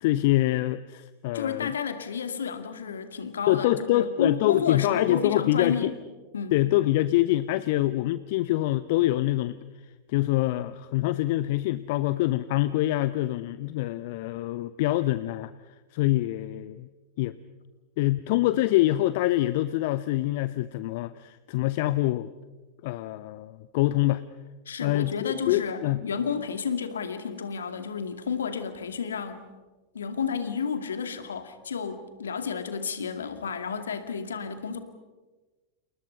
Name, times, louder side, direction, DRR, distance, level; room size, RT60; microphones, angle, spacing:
voice 1, 0.0-1.7 3.5-5.9 6.5-9.6 10.1-15.5 15.9-16.9 17.2-17.3 18.0-22.3 22.8-24.2 24.8-26.1, left 16 dB, 50° left, 15 dB, 0.7 m, -25 dB
voice 2, 1.3-6.0 6.3-6.6 24.7-29.4 29.9-34.8, left 6 dB, 70° left, 9 dB, 2.2 m, -31 dB
30.0 x 29.0 x 5.5 m, 1.2 s
figure-of-eight pair, 90°, 0 cm